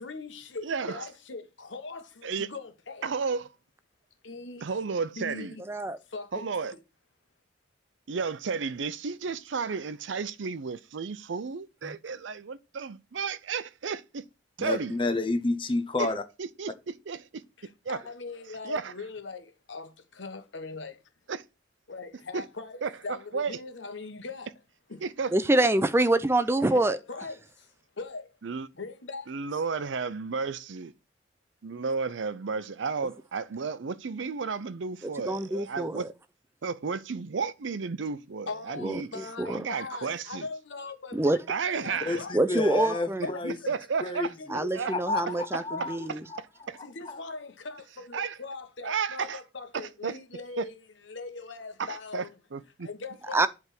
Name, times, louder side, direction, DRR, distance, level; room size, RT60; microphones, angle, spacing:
voice 1, 0.0-3.1 4.2-4.6 5.1-5.6 6.1-6.5 17.6-21.0 21.9-24.5 24.9-25.0 26.7-27.7 28.0-28.3 28.7-29.6 38.5-41.2 41.7-42.6 42.9-43.7 44.5-44.9 45.1-46.1 46.8-50.7 51.1-52.3 52.8-53.5, left 4 dB, 75° left, 1.2 m, -40 dB
voice 2, 0.6-1.0 2.2-2.5 3.0-3.5 4.6-5.6 6.3-6.7 8.1-14.2 14.6-14.9 16.0-16.1 16.4-17.4 17.8-18.0 18.6-18.9 21.3-21.4 22.3-22.4 22.8-23.6 25.0-25.3 28.4-28.7 29.3-30.9 31.6-36.1 36.6-39.1 39.5-40.5 41.5-42.2 43.4-44.9 45.8-46.2 46.7-46.8 48.1-48.4 48.8-49.4 49.7-50.2 50.6-50.7 51.8-52.9, right 5 dB, 75° right, 0.5 m, -33 dB
voice 3, 5.7-6.0 11.9-12.0 25.3-27.0 35.3-36.1 38.8-39.6 41.1-41.4 42.3-43.3 44.5-46.2 53.3-53.5, right 2 dB, 15° right, 0.4 m, -26 dB
voice 4, 14.6-16.2 42.1-43.6 44.0-44.6 44.9-46.0 46.8-47.2, left 2 dB, 25° left, 0.7 m, -30 dB
8.2 x 3.6 x 6.0 m
head